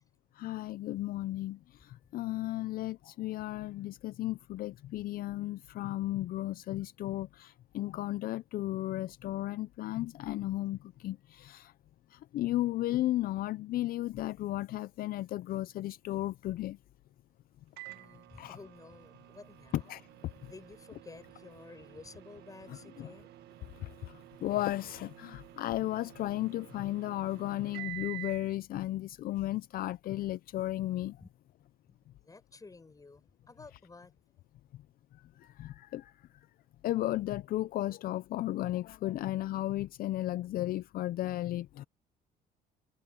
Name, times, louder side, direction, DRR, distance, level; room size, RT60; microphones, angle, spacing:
voice 1, 0.4-11.7 12.1-16.8 18.4-18.6 19.9-20.0 23.0-23.1 23.8-31.1 35.4-36.1 36.8-41.8, left 15 dB, 60° left, 0.5 m, -34 dB
Microwave oven, 17.8-28.5, right 19 dB, 75° right, 1.6 m, -49 dB
voice 2, 17.9-23.4 25.4-25.5 31.2-31.3 31.9-32.0 32.2-34.2, left 3 dB, 20° left, 8.0 m, -53 dB
cardioid pair, 110°, 17 cm